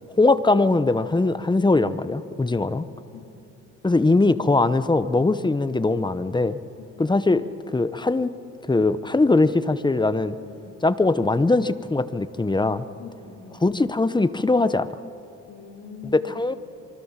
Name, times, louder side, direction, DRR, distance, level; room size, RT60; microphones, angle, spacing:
voice 1, 0.2-2.8 3.8-6.6 7.0-7.4 7.7-8.3 8.7-10.4 10.8-12.8 13.6-14.9 16.0-16.5, left 2 dB, 15° left, 13 dB, 1.0 m, -21 dB
voice 2, 13.0-13.6 15.5-16.3, left 5 dB, 65° left, -1 dB, 3.6 m, -43 dB
25.5 x 24.5 x 7.4 m, 2.8 s
cardioid pair, 90°, 30 cm